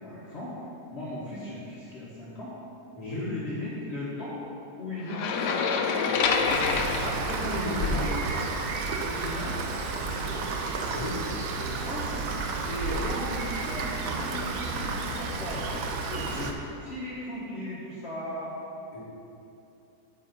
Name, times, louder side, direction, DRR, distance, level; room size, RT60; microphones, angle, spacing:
voice 1, 0.0-0.6 0.9-2.6 3.0-4.4 4.8-6.2 6.8-7.2 7.5-8.3 9.0-10.5 11.6-12.1 12.7-15.8 16.1-18.6, left 1 dB, 45° left, -8 dB, 1.4 m, -37 dB
voice 2, 2.9-3.5 6.7-8.2 10.8-11.3 18.9-19.0, left 1 dB, 20° left, -6 dB, 1.7 m, -35 dB
sound 1, 5.1-8.1, left 5 dB, 90° left, 1.3 m, -27 dB
Rain, 6.5-16.5, right 3 dB, 65° right, 1.1 m, -32 dB
8.9 x 7.7 x 4.0 m, 2.8 s
omnidirectional pair, 1.7 m